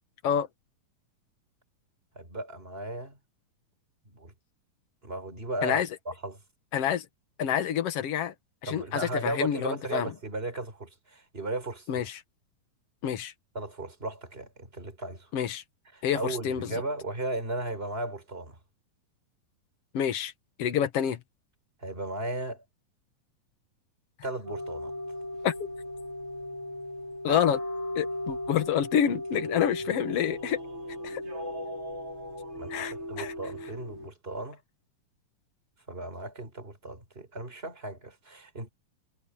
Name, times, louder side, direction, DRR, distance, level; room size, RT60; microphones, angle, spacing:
voice 1, 2.1-3.2 4.0-4.3 5.0-5.8 6.0-6.4 8.7-12.1 13.5-15.3 15.9-18.6 21.8-22.6 24.2-24.9 32.6-34.6 35.9-38.7, right 1 dB, 15° right, 5.1 m, -36 dB
voice 2, 6.7-7.1 7.4-8.3 8.6-10.1 11.9-12.2 13.0-13.3 15.3-15.6 16.0-16.8 19.9-20.3 20.6-21.2 25.4-25.5 27.2-27.6 28.0-30.6 31.0-31.2 32.7-33.3, left 9 dB, 55° left, 2.2 m, -28 dB
sound 1, 24.5-34.1, left 1 dB, 40° right, 7.5 m, -37 dB
omnidirectional pair, 3.9 m